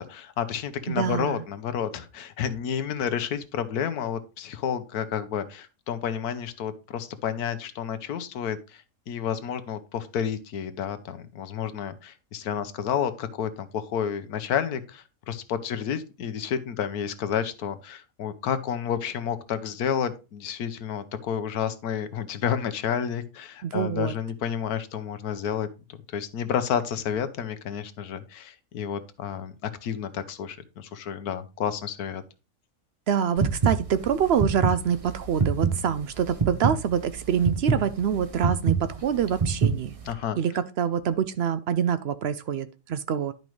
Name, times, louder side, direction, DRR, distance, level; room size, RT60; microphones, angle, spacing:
voice 1, 0.1-25.7 26.1-32.2 40.0-40.4, left 8 dB, 85° left, 1.4 m, -30 dB
voice 2, 0.9-1.4 23.6-24.1 33.1-39.9 40.4-43.3, right 8 dB, 70° right, 0.6 m, -26 dB
sound 1, 33.4-40.1, right 5 dB, 30° right, 0.7 m, -26 dB
11.0 x 5.2 x 3.1 m
omnidirectional pair, 1.6 m